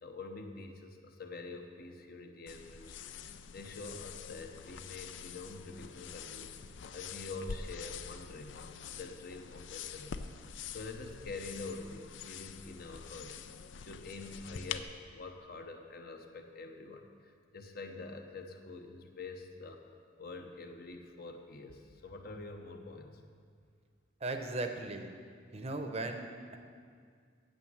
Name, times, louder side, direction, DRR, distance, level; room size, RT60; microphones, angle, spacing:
voice 1, 0.0-6.6 6.9-8.6 8.9-13.4 13.8-23.2, left 3 dB, 55° left, 5 dB, 0.9 m, -46 dB
sound 1, 2.5-14.8, left 7 dB, 75° left, 0.5 m, -46 dB
voice 2, 24.2-25.2 25.5-26.6, right 2 dB, 35° right, 5 dB, 0.7 m, -37 dB
8.9 x 7.0 x 7.8 m, 2.1 s
head